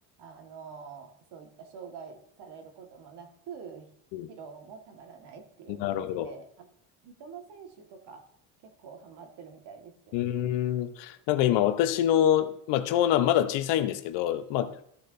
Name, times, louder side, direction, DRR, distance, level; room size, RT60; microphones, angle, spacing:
voice 1, 0.2-3.9 4.3-6.7 7.0-8.2 8.6-10.4 14.6-14.8, right 6 dB, 55° right, 5 dB, 1.7 m, -46 dB
voice 2, 5.7-6.3 10.1-14.7, left 11 dB, 65° left, 11 dB, 0.9 m, -25 dB
14.5 x 6.4 x 2.6 m, 0.67 s
supercardioid pair, 85°, 47 cm